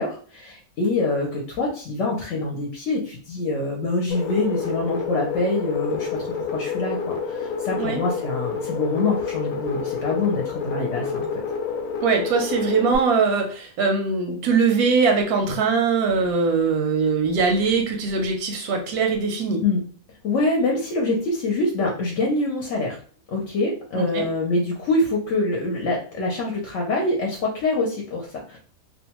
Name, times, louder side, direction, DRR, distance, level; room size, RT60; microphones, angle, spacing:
voice 1, 0.0-11.3 19.6-19.8 20.2-23.0 23.3-28.6, left 2 dB, 65° left, -1 dB, 0.9 m, -25 dB
sound 1, 4.1-13.0, left 6 dB, 85° left, 1.1 m, -29 dB
voice 2, 12.0-19.6 24.0-24.2, right 4 dB, 90° right, 3 dB, 1.1 m, -21 dB
2.7 x 2.2 x 2.9 m, 0.42 s
omnidirectional pair, 1.5 m